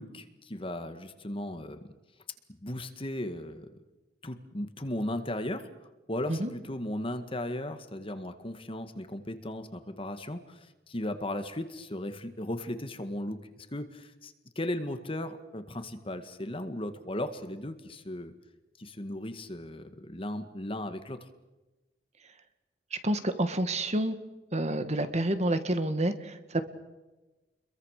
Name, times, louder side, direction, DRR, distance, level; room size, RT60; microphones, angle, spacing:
voice 1, 0.0-1.9 2.5-3.8 4.2-5.7 6.1-18.3 18.8-21.3, left 1 dB, 30° left, 8 dB, 1.9 m, -36 dB
voice 2, 22.9-24.2 24.5-26.6, right 1 dB, 40° right, 9 dB, 2.0 m, -29 dB
30.0 x 22.5 x 6.7 m, 1.1 s
head